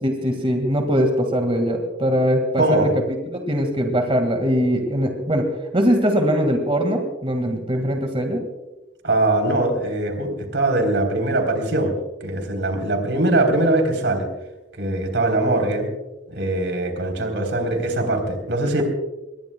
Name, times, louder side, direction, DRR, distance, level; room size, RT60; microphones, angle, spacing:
voice 1, 0.0-2.9 3.3-5.5 5.7-8.4, equal, 30° right, 4 dB, 1.8 m, -21 dB
voice 2, 2.6-2.9 9.0-11.9 12.2-14.3 14.8-15.9 16.3-18.8, right 2 dB, 85° right, 4 dB, 3.6 m, -21 dB
24.5 x 21.5 x 2.3 m, 1.1 s
head